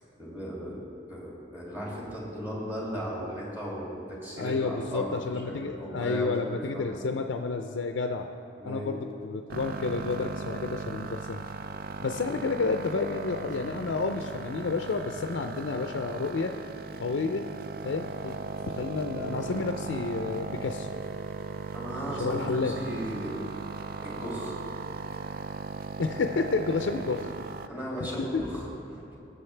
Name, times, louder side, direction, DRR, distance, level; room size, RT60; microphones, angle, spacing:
voice 1, 0.2-0.8 1.1-7.1 8.6-8.9 21.7-23.4 24.0-24.6 27.7-28.6 28.9-29.2, equal, 10° right, -6 dB, 2.5 m, -36 dB
voice 2, 4.4-8.3 8.6-11.4 12.0-16.5 17.0-17.4 17.8-18.4 18.7-20.9 22.2-22.7 26.0-27.3 28.0-28.4, left 4 dB, 80° left, 5 dB, 0.4 m, -30 dB
sound 1, 9.5-27.7, right 5 dB, 55° right, 0.4 m, -38 dB
18.0 x 7.0 x 3.3 m, 2.7 s
head